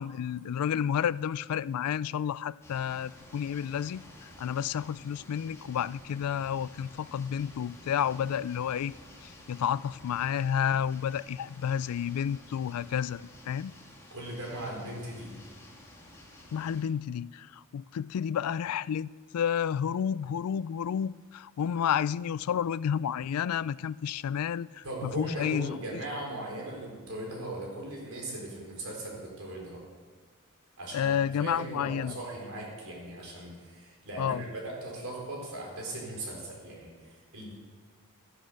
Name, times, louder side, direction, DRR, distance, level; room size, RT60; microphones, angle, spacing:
voice 1, 0.0-4.0 4.4-8.9 9.2-13.7 16.5-25.8 30.9-32.2 34.2-34.4, left 8 dB, 85° left, 0.3 m, -31 dB
sound 1, 2.6-16.8, left 1 dB, 15° left, 2.2 m, -52 dB
voice 2, 14.1-15.3 24.8-29.8 30.8-31.1 31.4-37.5, right 1 dB, 70° right, 4.2 m, -39 dB
13.0 x 11.5 x 6.5 m
head